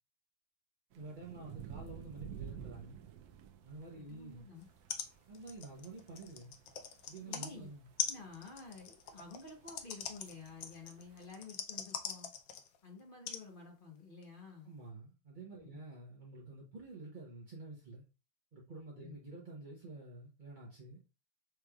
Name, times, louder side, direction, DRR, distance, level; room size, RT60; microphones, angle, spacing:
sound 1, 0.9-11.3, right 9 dB, 85° right, 0.8 m, -52 dB
voice 1, 1.0-3.1 3.6-4.5 5.3-6.5 7.1-7.9 14.6-18.0 18.5-21.0, right 2 dB, 45° right, 0.6 m, -49 dB
voice 2, 3.9-4.7 7.2-7.7 8.1-12.3 12.8-14.7 15.7-15.8 19.0-19.1, left 4 dB, 40° left, 0.8 m, -51 dB
sound 2, 4.6-4.7 4.9-5.1 5.3-7.5 8.0-12.8 13.3-13.4 14.2-14.3, left 8 dB, 80° left, 0.8 m, -41 dB
6.4 x 3.2 x 2.3 m
omnidirectional pair, 2.2 m